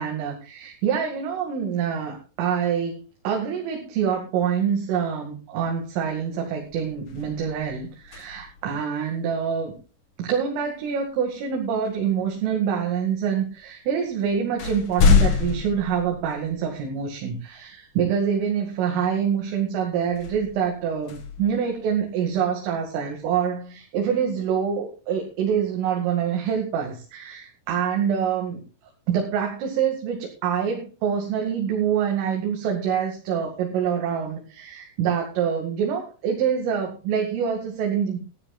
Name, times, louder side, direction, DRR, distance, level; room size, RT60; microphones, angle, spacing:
voice 1, 0.0-9.8 10.2-28.6 29.1-38.2, right 7 dB, 80° right, 1 dB, 4.7 m, -26 dB
sound 1, 6.0-6.3 6.6-8.7 10.9-11.0 11.9-12.6 13.5-13.6 14.0-16.8 17.4-17.5 20.1-22.3, left 6 dB, 55° left, 2.6 m, -26 dB
19.5 x 13.5 x 2.4 m, 0.34 s
omnidirectional pair, 5.8 m